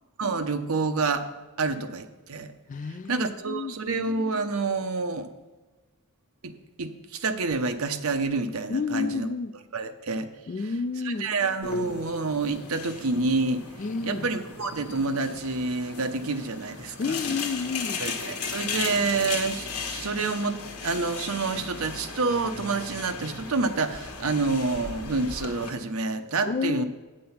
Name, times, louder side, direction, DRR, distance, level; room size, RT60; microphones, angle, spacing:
voice 1, 0.2-1.3 1.6-2.5 3.1-5.3 6.4-6.5 6.8-9.3 9.7-10.3 11.0-13.6 14.0-17.2 18.0-26.8, right 3 dB, 65° right, 0.8 m, -28 dB
voice 2, 2.7-3.8 8.7-9.5 10.5-11.4 13.8-14.3 17.0-18.0 26.5-26.8, left 5 dB, 35° left, 0.3 m, -30 dB
sound 1, 11.6-25.7, left 4 dB, 85° left, 1.3 m, -36 dB
8.7 x 7.6 x 5.7 m
head